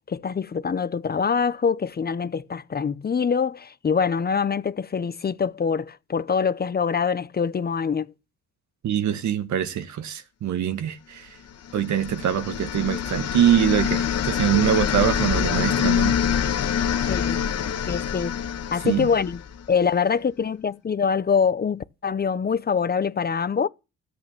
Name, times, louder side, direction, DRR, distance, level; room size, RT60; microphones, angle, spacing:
voice 1, 0.1-8.1 17.1-17.4 17.9-18.3 18.7-19.4 19.7-23.7, left 6 dB, 30° left, 0.8 m, -24 dB
voice 2, 8.8-11.4 11.7-16.2 16.9-17.1 18.8-19.1, right 9 dB, 70° right, 1.7 m, -24 dB
sound 1, 11.7-19.7, left 8 dB, 55° left, 1.3 m, -25 dB
13.5 x 8.3 x 7.3 m
cardioid pair, 90°, 30 cm